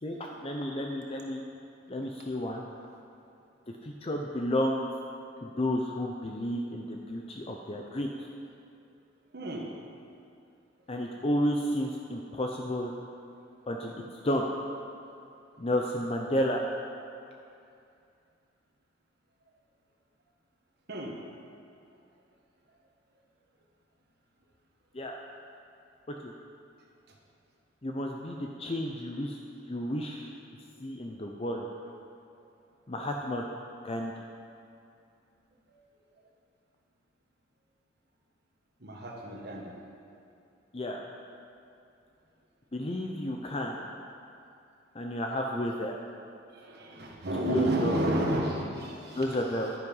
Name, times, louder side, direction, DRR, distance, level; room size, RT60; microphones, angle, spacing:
voice 1, 0.0-1.4 1.9-2.6 3.8-4.9 5.4-8.1 10.9-12.9 13.7-13.9 14.2-14.5 15.6-16.6 24.9-25.1 26.1-26.3 27.8-29.4 29.7-30.3 30.8-31.7 32.9-33.5 33.8-34.1 40.7-41.0 42.7-43.8 44.9-46.0 47.5-48.1 49.1-49.7, left 1 dB, 30° left, 1 dB, 0.6 m, -31 dB
voice 2, 9.3-9.7 20.9-21.1 35.7-35.8 38.8-39.7 46.5-49.3, right 1 dB, 55° right, -1 dB, 1.5 m, -31 dB
11.0 x 9.7 x 5.5 m, 2.5 s
head